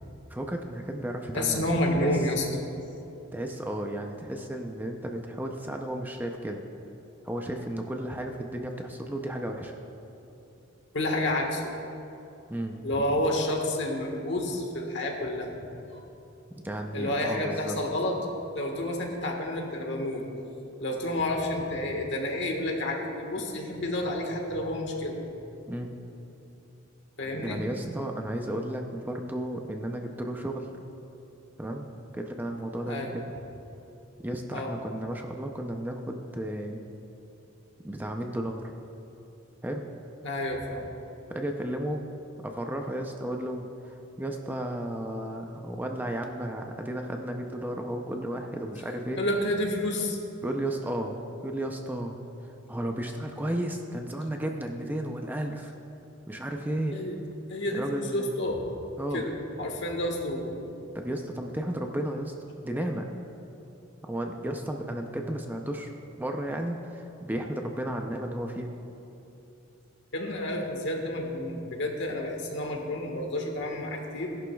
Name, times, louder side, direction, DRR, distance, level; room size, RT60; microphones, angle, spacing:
voice 1, 0.3-1.7 2.0-2.2 3.3-6.6 7.2-9.7 12.5-12.8 16.5-17.8 25.7-25.9 27.3-30.7 31.6-31.9 32.1-33.2 34.2-36.8 37.8-38.7 39.6-39.8 41.3-42.0 42.4-49.2 50.4-51.2 51.4-52.2 52.7-55.7 56.3-57.0 57.7-58.3 59.0-59.2 60.9-62.3 62.6-63.1 64.0-65.9 66.2-68.7, right 1 dB, 10° right, 2 dB, 0.5 m, -33 dB
voice 2, 1.3-2.5 10.9-11.6 12.8-15.6 15.9-16.0 16.9-20.2 20.8-25.2 27.2-27.6 32.8-33.1 34.5-34.7 40.2-40.8 49.2-50.2 56.9-57.2 57.5-58.7 59.1-60.5 70.1-74.3, left 1 dB, 60° left, 1 dB, 1.5 m, -30 dB
17.5 x 11.5 x 2.3 m, 2.9 s
head